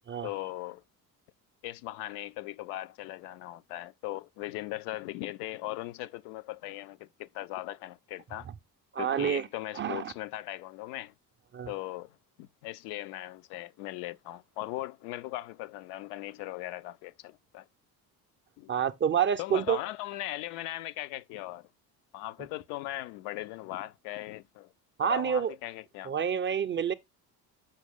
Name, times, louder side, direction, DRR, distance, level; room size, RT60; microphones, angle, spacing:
voice 1, 0.2-0.8 1.6-8.5 9.0-11.1 11.7-17.7 18.6-18.7 19.4-21.7 22.1-24.7 25.0-26.1, left 16 dB, 55° left, 0.5 m, -39 dB
voice 2, 8.9-9.5 9.8-10.1 11.5-11.7 18.7-19.8 25.0-25.5 26.1-26.9, right 8 dB, 25° right, 0.5 m, -28 dB
6.4 x 6.1 x 3.5 m
figure-of-eight pair, 55°, 49 cm